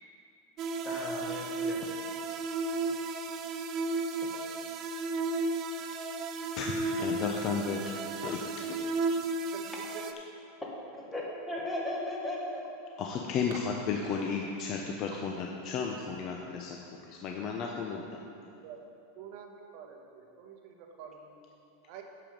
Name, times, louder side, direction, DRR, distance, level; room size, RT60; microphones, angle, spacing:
sound 1, 0.6-10.1, right 3 dB, 35° right, 0.5 m, -34 dB
voice 1, 0.8-1.8 4.2-4.3 10.9-12.6, left 1 dB, 5° left, -3 dB, 1.4 m, -36 dB
voice 2, 7.0-8.8 13.0-16.8 17.1-18.2, left 5 dB, 35° left, 1 dB, 0.6 m, -34 dB
voice 3, 9.5-10.0 18.5-18.8 19.2-21.4 21.9-22.0, right 8 dB, 50° right, 2 dB, 1.1 m, -48 dB
8.8 x 6.9 x 5.3 m, 2.6 s
supercardioid pair, 155°, 0 cm